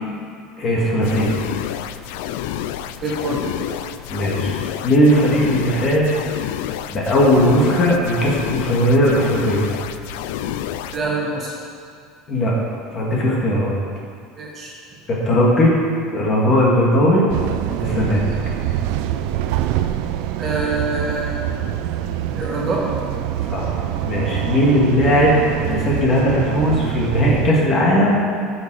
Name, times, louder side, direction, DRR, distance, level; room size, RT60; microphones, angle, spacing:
voice 1, 0.6-1.3 4.1-4.5 4.8-6.1 6.9-9.7 12.3-12.5 12.9-13.7 15.3-15.7 16.1-17.2 17.8-18.3 23.5-23.7 24.0-25.4 25.6-28.2, equal, 30° left, -4 dB, 2.0 m, -17 dB
sound 1, 1.0-11.0, left 11 dB, 80° left, 0.4 m, -29 dB
voice 2, 3.0-3.7 10.9-11.5 14.4-14.7 20.4-21.4 22.3-22.9, right 2 dB, 25° right, -3 dB, 1.5 m, -25 dB
sound 2, 17.3-27.5, right 11 dB, 65° right, 0.5 m, -25 dB
13.5 x 6.4 x 4.9 m, 2.2 s
cardioid pair, 165°, 0 cm